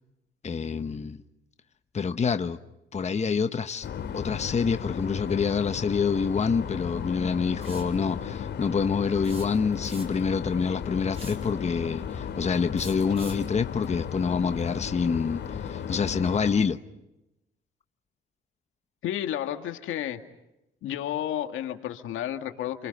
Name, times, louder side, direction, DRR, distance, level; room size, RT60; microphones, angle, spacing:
voice 1, 0.4-1.2 1.9-2.6 2.9-3.9 4.1-16.8, left 5 dB, 35° left, 1.1 m, -27 dB
sound 1, 3.8-16.5, left 7 dB, 60° left, 2.6 m, -35 dB
sound 2, 7.6-7.9 9.2-10.3 11.1-11.5 12.8-13.5, right 2 dB, 30° right, 5.9 m, -45 dB
voice 2, 19.0-20.2 20.8-22.9, left 11 dB, 85° left, 2.0 m, -31 dB
28.0 x 26.0 x 5.5 m
cardioid pair, 90°, 20 cm